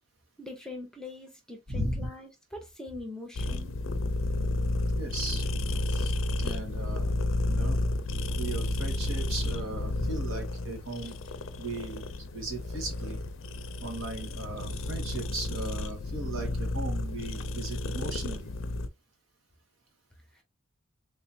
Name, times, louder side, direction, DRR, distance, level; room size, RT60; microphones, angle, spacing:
voice 1, 0.4-3.8 7.8-7.9 20.3-20.4, left 2 dB, 5° left, 0.7 m, -43 dB
voice 2, 1.7-2.1 5.0-5.5 5.9-7.1 7.5-7.8 8.4-11.1 11.6-12.0 12.3-13.2 13.8-18.5, right 2 dB, 75° right, 1.6 m, -37 dB
sound 1, 3.4-18.9, left 2 dB, 70° left, 0.5 m, -31 dB
3.7 x 3.1 x 2.7 m
head